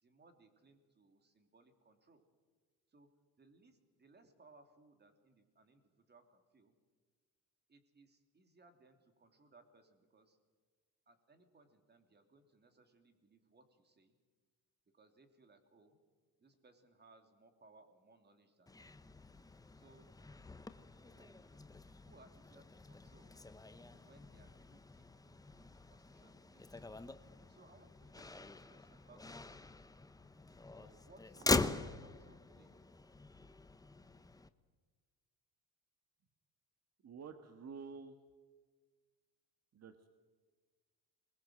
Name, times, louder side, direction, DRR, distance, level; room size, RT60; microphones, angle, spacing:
voice 1, 0.0-2.2 2.9-3.1 3.4-6.7 7.7-10.4 11.1-14.1 14.9-16.0 16.4-18.9 19.7-20.1 21.0-23.4 23.8-26.8 27.5-29.6 30.8-32.8, right 3 dB, 25° right, 7 dB, 3.1 m, -66 dB
Motor vehicle (road), 18.7-34.5, left 3 dB, 10° left, 0.8 m, -43 dB
voice 2, 37.0-38.2 39.7-40.1, right 5 dB, 40° right, 7 dB, 1.6 m, -50 dB
22.5 x 21.5 x 7.7 m, 1.4 s
cardioid pair, 125°, 39 cm